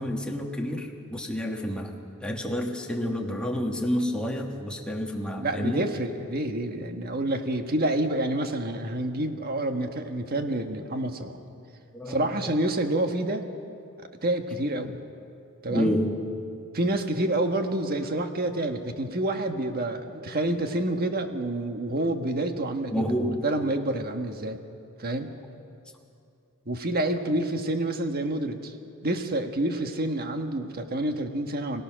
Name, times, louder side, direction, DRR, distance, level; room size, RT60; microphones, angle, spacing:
voice 1, 0.0-5.9 11.9-12.5 15.7-16.3 22.9-23.5 25.1-25.3, equal, 5° left, 0 dB, 1.8 m, -29 dB
voice 2, 5.4-11.4 12.1-13.5 14.2-15.0 15.6-15.9 16.7-23.0 23.4-24.6 25.0-25.3 26.7-28.7 29.0-31.8, right 1 dB, 45° right, 5 dB, 1.4 m, -28 dB
26.0 x 17.0 x 6.3 m, 2.5 s
head